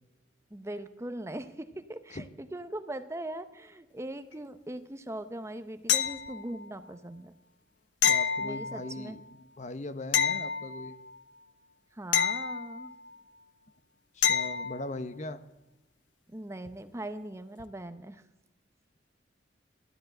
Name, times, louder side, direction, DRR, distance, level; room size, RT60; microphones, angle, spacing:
voice 1, 0.5-7.3 8.4-9.2 11.9-12.9 16.3-18.2, right 1 dB, 15° right, 11 dB, 0.7 m, -40 dB
sound 1, 5.9-6.7 8.0-9.1 10.1-11.2 12.1-13.2 14.2-14.8 17.6-17.7, left 8 dB, 80° left, 0.8 m, -28 dB
voice 2, 8.1-11.0 14.1-15.4, left 2 dB, 40° left, 12 dB, 0.8 m, -40 dB
13.0 x 10.0 x 7.7 m, 1.0 s
head